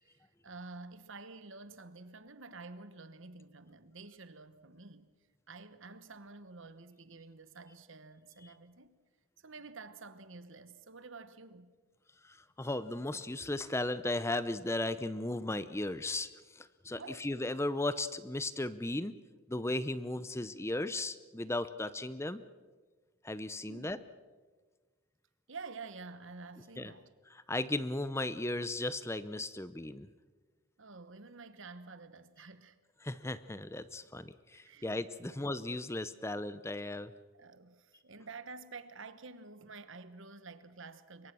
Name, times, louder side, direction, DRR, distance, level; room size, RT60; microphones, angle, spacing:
voice 1, 0.0-5.1 5.5-9.0 9.4-11.7 17.0-17.3 23.6-24.1 25.5-27.1 30.8-32.8 34.5-35.4 37.3-41.3, right 3 dB, 60° right, 1.2 m, -50 dB
voice 2, 12.2-19.2 19.5-22.4 23.2-24.0 26.8-26.9 27.5-30.1 33.0-37.1, left 2 dB, 10° left, 0.6 m, -36 dB
24.5 x 22.5 x 6.2 m
head